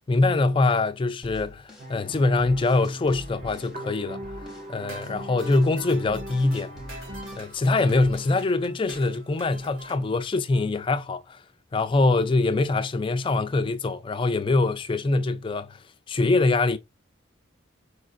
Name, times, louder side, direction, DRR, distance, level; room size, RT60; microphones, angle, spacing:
voice 1, 0.1-6.7 7.3-11.4 11.7-16.8, left 3 dB, 25° left, 0.3 m, -24 dB
sound 1, 1.2-3.8 4.2-4.7 5.0-7.5 7.9-8.4, left 1 dB, ahead, 0.9 m, -45 dB
sound 2, 1.8-7.4, right 1 dB, 40° right, 0.7 m, -40 dB
sound 3, 4.8-10.0, right 2 dB, 90° right, 1.7 m, -45 dB
4.7 x 2.4 x 2.4 m
head